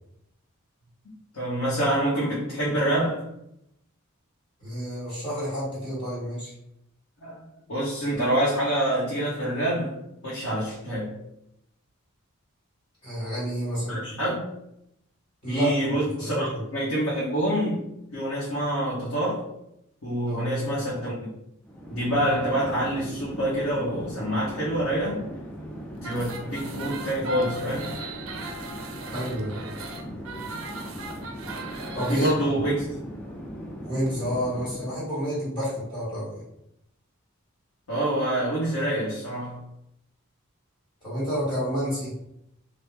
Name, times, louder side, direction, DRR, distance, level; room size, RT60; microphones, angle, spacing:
voice 1, 1.3-3.3 7.2-7.4 7.7-10.0 10.2-11.1 13.9-14.4 15.5-17.8 18.1-19.5 20.0-21.2 21.9-25.2 26.0-27.9 32.1-32.9 37.9-39.6, right 1 dB, 90° left, -7 dB, 0.8 m, -26 dB
voice 2, 4.6-6.5 13.0-14.0 15.4-15.7 16.2-16.6 20.3-20.5 29.0-29.5 31.9-32.6 33.8-36.4 41.0-42.1, equal, 20° left, -10 dB, 1.2 m, -29 dB
Chatter / Fixed-wing aircraft airplane, 21.6-35.0, equal, 5° left, 0.3 m, -39 dB
sound 1, 26.0-32.4, right 3 dB, 70° right, 0.5 m, -39 dB
3.4 x 2.0 x 3.2 m, 0.81 s
head